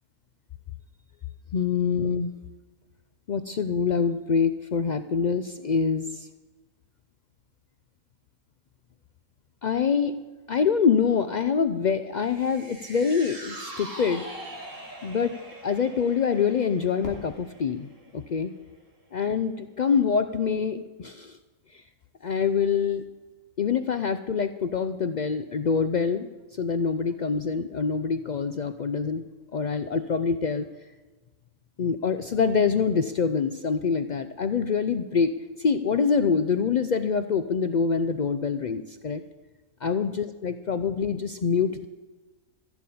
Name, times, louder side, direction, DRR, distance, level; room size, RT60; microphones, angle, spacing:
voice 1, 1.5-2.3 3.3-6.3 9.6-10.1 10.5-14.3 15.0-15.4 15.6-18.5 19.1-21.4 21.7-21.8 22.2-23.0 23.6-29.2 29.5-30.7 31.8-35.3 35.6-39.2 39.8-41.9, left 6 dB, 85° left, 10 dB, 0.4 m, -25 dB
sound 1, 12.3-18.8 19.1-19.2, right 1 dB, 40° right, 2.9 m, -43 dB
Fireworks, 17.0-19.9, left 2 dB, 65° left, 3.3 m, -46 dB
15.0 x 7.2 x 8.5 m, 1.2 s
omnidirectional pair, 1.5 m